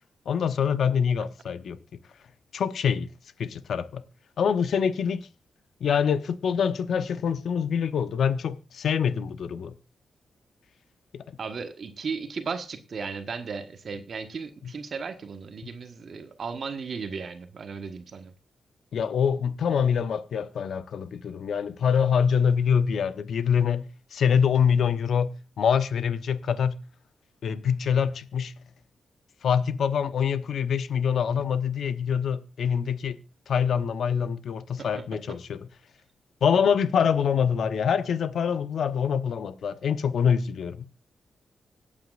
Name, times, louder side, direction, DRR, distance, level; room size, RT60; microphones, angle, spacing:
voice 1, 0.3-1.8 2.5-3.1 3.4-4.0 4.4-5.3 5.8-9.8 11.1-11.2 14.6-14.7 15.6-15.7 18.9-26.8 27.4-28.5 29.4-33.2 33.5-35.7 36.4-40.9, left 7 dB, 75° left, 0.9 m, -25 dB
voice 2, 11.4-18.3 34.8-35.0 35.3-35.4, right 5 dB, 55° right, 1.3 m, -35 dB
25.5 x 8.7 x 2.5 m
cardioid pair, 85°, 0 cm